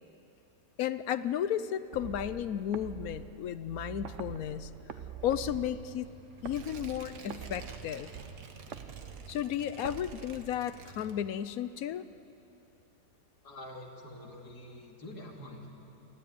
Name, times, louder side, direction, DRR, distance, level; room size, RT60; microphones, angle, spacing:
voice 1, 0.8-4.7 5.2-6.1 6.4-8.1 9.3-12.1, left 10 dB, 70° left, 14 dB, 1.1 m, -33 dB
sound 1, 1.9-11.0, right 9 dB, 55° right, 1.0 m, -46 dB
Motorcycle / Engine starting / Idling, 5.2-11.3, right 4 dB, 35° right, 1.5 m, -54 dB
Tearing, 6.5-11.6 12.0-12.1, right 5 dB, 85° right, 1.9 m, -52 dB
voice 2, 13.4-15.8, left 1 dB, 85° left, 0 dB, 3.1 m, -46 dB
24.5 x 15.5 x 9.7 m, 2.8 s
omnidirectional pair, 1.7 m